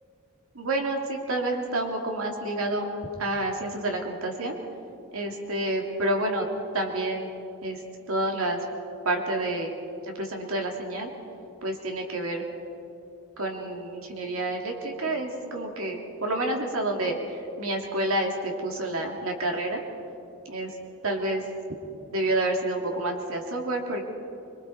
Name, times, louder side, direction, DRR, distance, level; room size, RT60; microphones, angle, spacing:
voice 1, 0.5-2.8 3.2-4.6 5.1-6.4 6.7-7.3 7.6-7.8 8.1-8.6 9.0-9.7 10.1-11.1 11.6-12.4 13.4-19.8 20.5-20.7 21.0-21.4 22.1-24.0, right 1 dB, 85° right, 1 dB, 2.5 m, -29 dB
25.0 x 23.0 x 4.6 m, 2.7 s
head